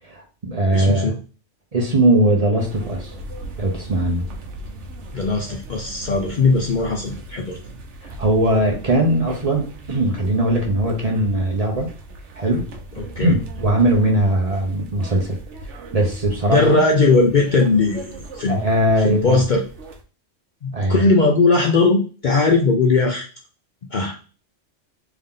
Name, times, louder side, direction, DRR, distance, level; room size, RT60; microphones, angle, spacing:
voice 1, 0.1-1.1 1.7-3.1 3.6-4.2 8.2-11.9 12.3-12.7 13.2-15.4 15.9-16.8 18.5-19.4 20.7-21.0, right 1 dB, 35° right, 0 dB, 0.7 m, -20 dB
voice 2, 0.7-1.2 5.1-7.6 13.0-13.3 16.5-18.6 19.0-19.6 20.6-23.3 23.9-24.2, left 3 dB, 55° left, 1 dB, 0.6 m, -18 dB
sound 1, 2.6-20.0, right 2 dB, 75° right, 1.1 m, -38 dB
3.4 x 2.7 x 3.6 m, 0.36 s
omnidirectional pair, 1.2 m